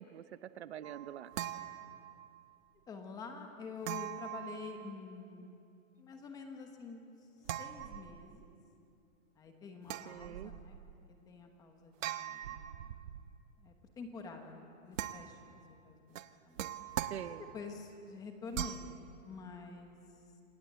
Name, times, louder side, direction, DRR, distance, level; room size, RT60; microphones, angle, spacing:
voice 1, 0.0-1.3 10.1-10.5 17.0-17.4, right 11 dB, 55° right, 13 dB, 0.8 m, -45 dB
sound 1, 0.8-2.4 3.8-5.2 7.4-8.5 9.8-10.9 12.0-13.4 14.9-15.6 16.1-17.7 18.5-19.0, right 11 dB, 75° right, 1.1 m, -42 dB
voice 2, 2.9-5.5 6.0-7.0 7.5-8.5 9.4-10.8 11.3-12.8 13.6-16.0 16.4-16.6 17.3-18.9 19.2-20.0, left 4 dB, 10° left, 4 dB, 1.1 m, -47 dB
27.0 x 19.0 x 8.1 m, 2.6 s
supercardioid pair, 180°, 40 cm